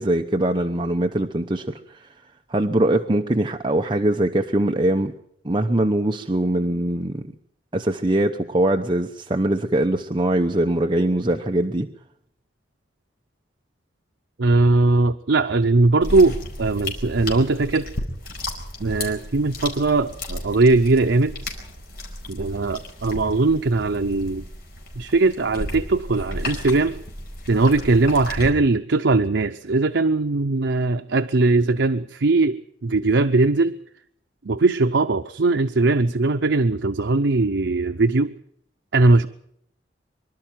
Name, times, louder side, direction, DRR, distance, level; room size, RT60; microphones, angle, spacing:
voice 1, 0.0-1.7 2.5-5.1 5.4-7.3 7.7-11.9, right 1 dB, 25° right, 4 dB, 0.9 m, -22 dB
voice 2, 14.4-17.9 18.8-21.6 22.3-24.5 25.0-27.0 27.5-33.8 34.4-38.4 38.9-39.3, right 3 dB, 80° right, 8 dB, 0.7 m, -20 dB
sound 1, 16.0-28.5, left 1 dB, 55° left, 4.8 m, -34 dB
24.5 x 12.0 x 9.2 m, 0.70 s
head